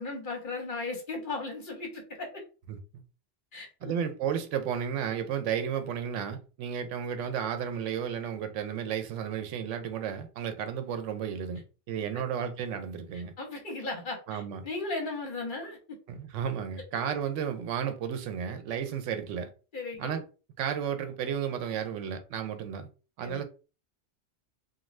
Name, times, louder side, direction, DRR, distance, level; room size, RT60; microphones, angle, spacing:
voice 1, 0.0-2.4 3.5-3.9 12.1-12.2 13.4-16.0 19.7-20.2 23.2-23.4, left 3 dB, 50° left, 0.8 m, -36 dB
voice 2, 3.8-13.3 14.3-14.6 16.1-19.5 20.0-20.2 20.6-22.9 23.2-23.4, right 8 dB, 85° right, 0.9 m, -33 dB
2.4 x 2.2 x 3.1 m
omnidirectional pair, 1.2 m